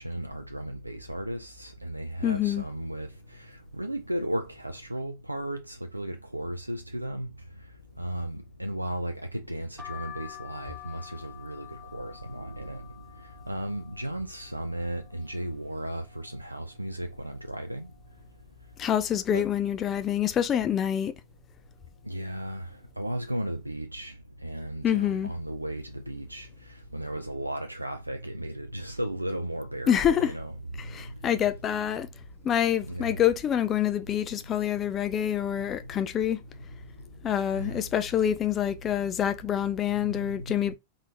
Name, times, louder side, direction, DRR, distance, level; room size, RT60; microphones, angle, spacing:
voice 1, 0.0-7.3 8.0-17.9 19.3-19.5 22.0-30.6 30.8-31.2 32.8-33.2 35.5-35.6 37.5-37.9 39.9-40.8, right 1 dB, 85° right, 0.3 m, -35 dB
voice 2, 2.2-2.6 18.8-21.1 24.8-25.3 29.9-30.3 30.9-32.1 32.4-36.4 37.2-40.8, left 10 dB, 30° left, 0.5 m, -26 dB
sound 1, 9.8-15.5 15.9-16.7 17.1-17.2 17.3-18.5 19.0-19.3 20.1-20.4 21.2-21.4 21.7-21.9, left 14 dB, ahead, 0.8 m, -48 dB
3.7 x 3.6 x 2.9 m
figure-of-eight pair, 90°, 0 cm